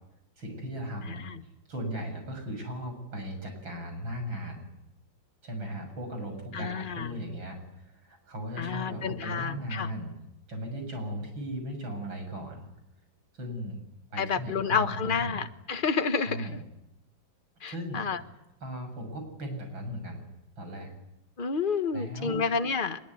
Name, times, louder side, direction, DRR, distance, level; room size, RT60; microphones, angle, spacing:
voice 1, 0.4-1.2 1.7-4.7 5.4-10.2 10.5-12.7 13.3-13.8 14.1-15.4 16.2-16.6 17.7-20.2 20.6-20.9 21.9-22.4, equal, 85° right, 4 dB, 7.8 m, -37 dB
voice 2, 6.5-7.1 8.6-9.9 14.2-16.5 17.6-18.2 21.4-23.0, left 5 dB, 30° left, 9 dB, 1.3 m, -30 dB
24.5 x 21.5 x 9.7 m, 0.89 s
omnidirectional pair, 2.1 m